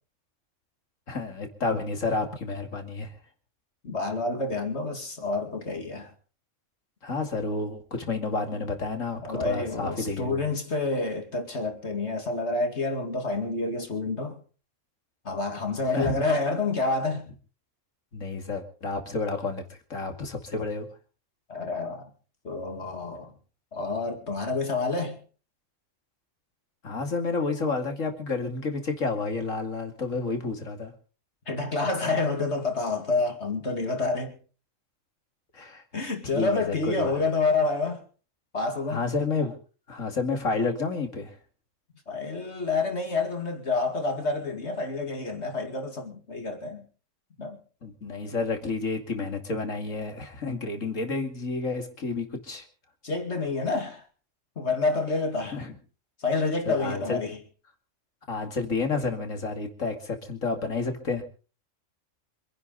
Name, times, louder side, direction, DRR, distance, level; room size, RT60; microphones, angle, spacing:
voice 1, 1.1-3.1 7.0-10.4 15.9-16.1 18.1-19.6 19.9-20.9 26.8-30.9 35.5-35.8 36.3-37.1 38.9-39.5 39.9-41.3 47.8-52.6 55.5-55.7 56.7-57.2 58.3-61.2, left 3 dB, 85° left, 2.9 m, -30 dB
voice 2, 3.8-6.1 9.2-14.4 15.2-17.3 21.5-22.1 22.4-23.3 23.7-25.2 31.5-34.3 35.9-38.0 38.5-39.1 42.1-46.8 47.4-47.6 53.0-54.0 54.6-55.6 56.2-57.4, left 3 dB, 60° left, 2.7 m, -28 dB
26.5 x 11.0 x 4.1 m
omnidirectional pair, 1.3 m